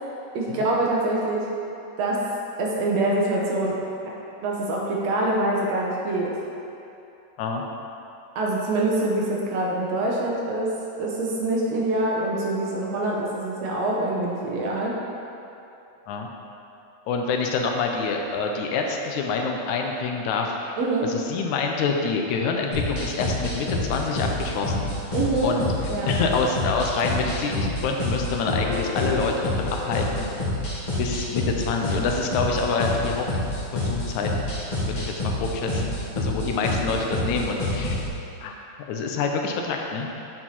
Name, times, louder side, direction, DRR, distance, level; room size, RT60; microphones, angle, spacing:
voice 1, 0.3-1.4 2.0-2.2 2.6-3.8 4.4-6.3 8.4-10.7 11.0-15.0 20.8-21.1 25.1-25.6 25.9-26.1, right 2 dB, 70° right, -3 dB, 1.8 m, -25 dB
voice 2, 17.1-20.8 21.0-25.0 25.4-30.3 31.0-33.4 33.7-34.5 34.8-38.1 38.4-38.6 38.9-40.1, left 4 dB, 80° left, 2 dB, 2.0 m, -27 dB
sound 1, 22.7-38.1, left 1 dB, 35° left, 0.7 m, -28 dB
sound 2, 28.6-31.2 33.4-33.5, left 6 dB, 55° left, 2.6 m, -37 dB
8.9 x 4.4 x 4.2 m, 2.8 s
omnidirectional pair, 3.4 m